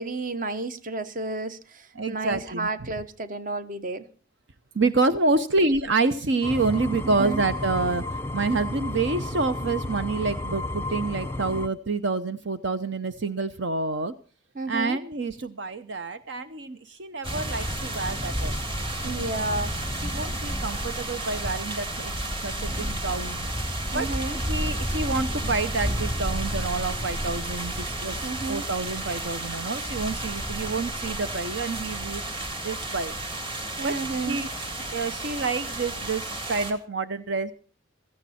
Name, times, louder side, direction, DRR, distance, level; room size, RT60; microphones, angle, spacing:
voice 1, 0.0-4.0 7.0-7.4 14.5-15.0 19.0-19.8 23.9-24.4 28.2-28.6 33.8-34.4, right 3 dB, 40° right, 1.0 m, -31 dB
voice 2, 2.0-2.7 4.7-14.1 14.7-18.6 20.0-22.1 22.4-23.5 23.9-28.2 28.5-32.2 32.6-33.1 33.8-34.0 34.3-37.5, right 3 dB, 60° right, 0.7 m, -28 dB
sound 1, 6.4-11.7, left 2 dB, 10° left, 0.6 m, -32 dB
sound 2, 17.2-36.7, right 1 dB, 25° right, 2.3 m, -31 dB
16.5 x 14.5 x 4.3 m
head